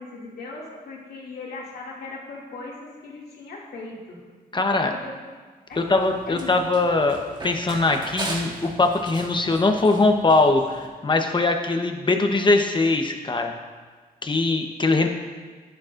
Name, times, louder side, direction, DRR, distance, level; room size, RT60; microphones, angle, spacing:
voice 1, 0.0-4.2 4.7-5.1 5.7-5.9 6.3-6.6 14.9-15.0, left 3 dB, 85° left, -4 dB, 2.5 m, -38 dB
voice 2, 4.5-4.9 5.8-7.2 7.4-13.5 14.2-15.1, left 3 dB, 30° left, 4 dB, 1.0 m, -21 dB
Run, 5.7-10.9, right 2 dB, 25° right, 1.6 m, -38 dB
12.0 x 10.5 x 2.6 m, 1.5 s
cardioid pair, 95°, 16 cm